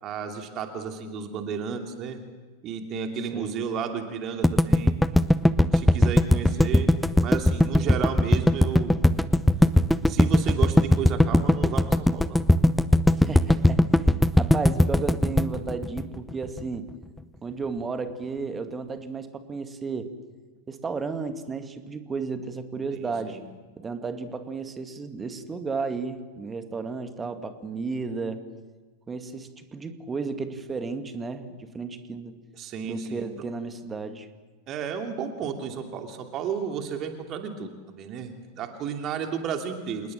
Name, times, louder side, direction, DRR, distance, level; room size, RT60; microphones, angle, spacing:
voice 1, 0.0-2.2 2.6-4.9 5.7-6.9 7.2-9.0 10.1-12.4 22.9-23.4 32.6-33.3 34.7-40.1, right 7 dB, 35° right, 4 dB, 2.7 m, -33 dB
sound 1, 4.4-16.6, left 1 dB, 5° left, 0.8 m, -19 dB
voice 2, 13.2-16.9 17.4-20.1 20.7-23.4 23.8-28.4 29.1-32.3 32.8-34.3, right 4 dB, 15° right, 8 dB, 2.1 m, -33 dB
28.0 x 20.0 x 7.5 m, 1.4 s
figure-of-eight pair, 90°, 0 cm